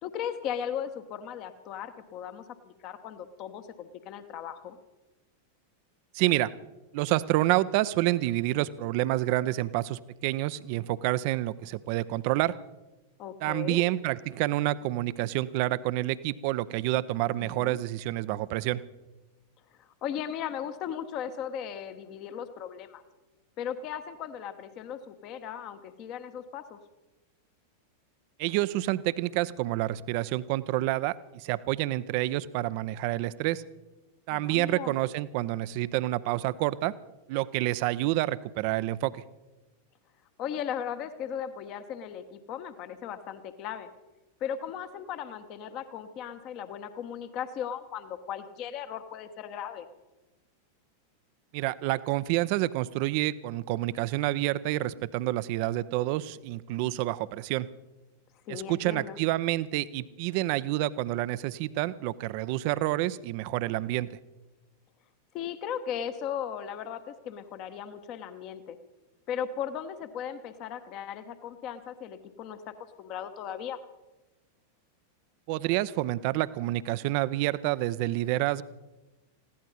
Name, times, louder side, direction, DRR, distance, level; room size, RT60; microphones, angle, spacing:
voice 1, 0.0-4.8 13.2-13.8 17.4-17.8 19.8-23.0 23.6-26.8 34.3-34.9 40.4-43.9 44.4-49.9 58.5-59.2 65.3-68.8 69.3-73.8, left 8 dB, 40° left, 10 dB, 1.2 m, -37 dB
voice 2, 6.1-6.5 6.9-12.6 13.4-18.8 28.4-33.6 34.3-36.9 37.3-39.1 51.5-57.7 58.5-64.2 75.5-78.6, right 16 dB, 45° right, 16 dB, 0.6 m, -28 dB
21.0 x 16.0 x 4.2 m, 1.1 s
figure-of-eight pair, 90°, 0 cm